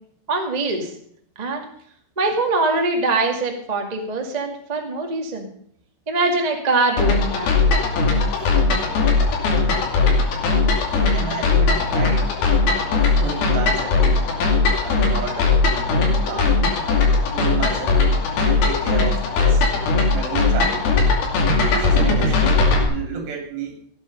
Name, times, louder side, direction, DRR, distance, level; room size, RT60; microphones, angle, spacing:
voice 1, 0.3-0.9 1.4-1.6 2.2-5.5 6.1-7.5, right 3 dB, 55° right, 2 dB, 0.4 m, -22 dB
sound 1, 7.0-22.8, left 3 dB, 60° left, 4.3 m, -19 dB
voice 2, 10.8-12.3 12.8-14.2 14.8-16.7 17.3-19.7 19.9-20.9 21.4-22.5 22.8-23.8, right 6 dB, 70° right, 3 dB, 4.9 m, -32 dB
17.0 x 9.7 x 5.3 m, 0.64 s
omnidirectional pair, 5.1 m